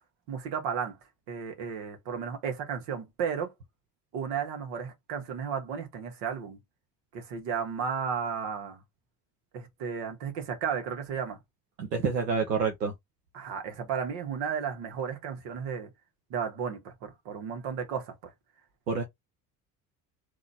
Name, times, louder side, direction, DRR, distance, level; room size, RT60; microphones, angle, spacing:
voice 1, 0.3-1.0 1.3-3.5 4.1-6.6 7.1-8.8 9.5-11.4 13.3-15.9 16.3-18.3, right 7 dB, 65° right, 1.7 m, -34 dB
voice 2, 11.8-12.9 18.9-19.0, right 5 dB, 90° right, 1.0 m, -28 dB
3.8 x 3.0 x 4.2 m
hypercardioid pair, 55°, 48 cm